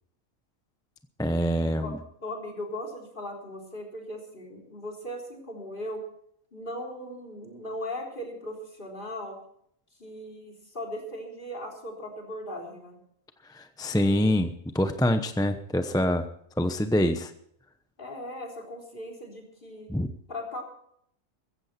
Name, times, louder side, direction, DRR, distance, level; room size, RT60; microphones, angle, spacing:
voice 1, 1.2-2.0 13.5-16.2 16.6-17.3 19.9-20.1, left 1 dB, 5° left, 8 dB, 0.6 m, -25 dB
voice 2, 2.2-6.0 6.5-9.4 10.0-13.0 18.0-19.9 20.3-20.6, left 1 dB, 35° left, 3 dB, 3.9 m, -38 dB
15.5 x 15.0 x 4.3 m, 0.69 s
omnidirectional pair, 1.4 m